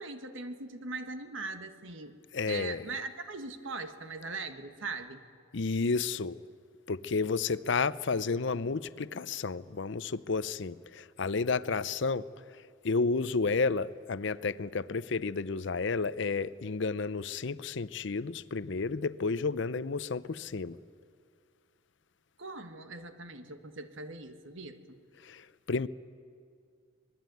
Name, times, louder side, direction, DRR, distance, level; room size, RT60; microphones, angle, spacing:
voice 1, 0.0-2.2 2.5-5.2 22.4-25.0, right 3 dB, 75° right, 1.6 m, -40 dB
voice 2, 2.3-2.9 5.5-6.4 6.9-12.3 12.8-20.8 25.2-25.9, left 4 dB, 65° left, 0.6 m, -31 dB
26.0 x 20.0 x 9.3 m
head